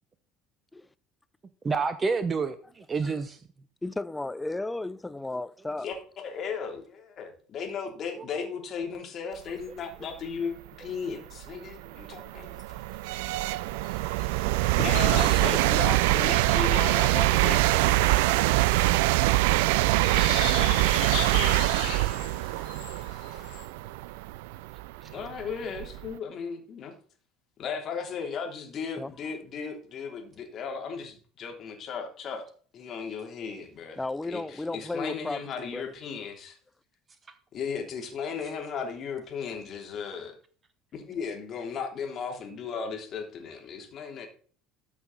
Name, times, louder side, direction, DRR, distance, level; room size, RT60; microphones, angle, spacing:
voice 1, 1.6-3.4 12.4-12.5 25.0-25.1, right 4 dB, 30° right, 0.9 m, -29 dB
voice 2, 3.8-5.9 14.7-14.9 15.5-15.6 29.0-29.1 34.0-35.9, left 2 dB, 10° left, 0.6 m, -34 dB
voice 3, 5.8-12.6 14.8-17.9 25.1-26.9 27.6-32.5 32.7-34.0 34.3-36.6 37.5-40.3 40.9-44.3, left 6 dB, 45° left, 3.3 m, -36 dB
sound 1, 10.7-10.8 11.4-26.1, right 18 dB, 65° right, 0.4 m, -24 dB
sound 2, 13.8-23.6, left 7 dB, 65° left, 3.0 m, -40 dB
14.0 x 6.1 x 4.2 m
figure-of-eight pair, 65°, 0 cm